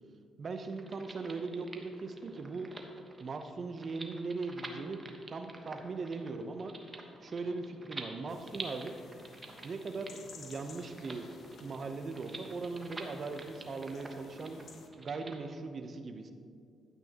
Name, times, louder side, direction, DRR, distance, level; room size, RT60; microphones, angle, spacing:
voice 1, 0.4-2.7 3.2-6.7 7.2-9.0 9.6-11.3 11.6-14.6 15.0-16.3, right 3 dB, 45° right, 7 dB, 0.8 m, -39 dB
sound 1, 0.6-15.4, right 3 dB, 25° right, 1.2 m, -49 dB
sound 2, 8.3-14.9, left 4 dB, 60° left, 0.9 m, -55 dB
12.0 x 8.9 x 2.9 m, 2.3 s
cardioid pair, 90°, 0 cm